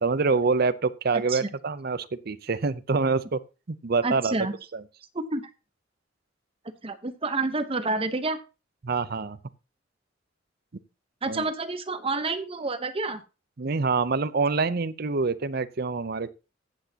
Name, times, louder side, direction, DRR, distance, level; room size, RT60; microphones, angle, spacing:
voice 1, 0.0-3.4 3.7-4.3 4.7-4.8 8.8-9.4 11.3-11.4 13.6-16.3, right 4 dB, 50° right, 0.6 m, -26 dB
voice 2, 4.0-4.5 5.1-5.5 6.8-8.4 11.2-13.2, right 3 dB, 30° right, 0.9 m, -29 dB
14.5 x 8.2 x 2.9 m
head